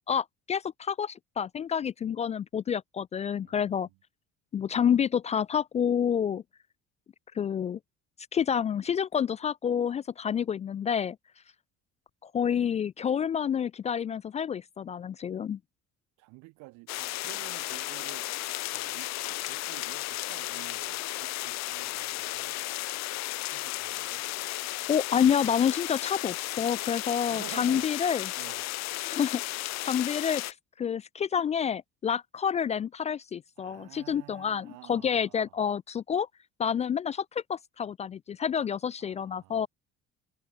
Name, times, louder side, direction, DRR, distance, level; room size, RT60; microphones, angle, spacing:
voice 1, 0.1-3.9 4.5-6.4 7.4-7.8 8.3-11.2 12.2-15.6 24.9-28.3 29.0-30.4 30.8-36.3 36.6-39.7, left 8 dB, 25° left, 0.3 m, -28 dB
voice 2, 3.3-3.9 16.2-18.3 18.7-22.6 23.5-24.2 27.3-27.9 28.3-28.7 33.6-35.6 39.0-39.7, right 23 dB, 85° right, 3.3 m, -50 dB
sound 1, 16.9-30.5, left 19 dB, 65° left, 1.1 m, -34 dB
cardioid pair, 165°, 30 cm